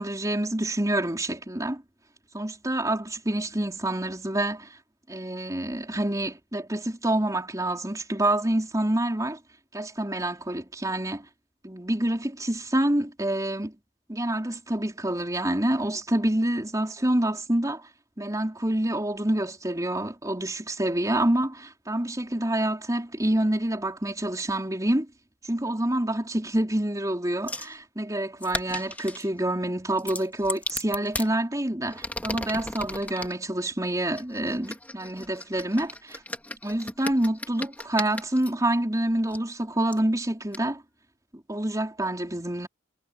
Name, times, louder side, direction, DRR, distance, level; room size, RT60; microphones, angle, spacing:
voice 1, 0.0-1.8 2.3-4.7 5.1-9.4 9.7-11.3 11.6-13.7 14.1-17.9 18.2-25.1 25.5-36.2 36.6-40.8 41.5-42.7, right 1 dB, 20° right, 4.2 m, -27 dB
sound 1, 27.5-27.7 28.4-29.3 30.0-31.3 31.9-33.3 34.1-38.5 39.3-39.4 39.9-40.0 40.5-40.6, left 2 dB, 10° left, 2.1 m, -36 dB
head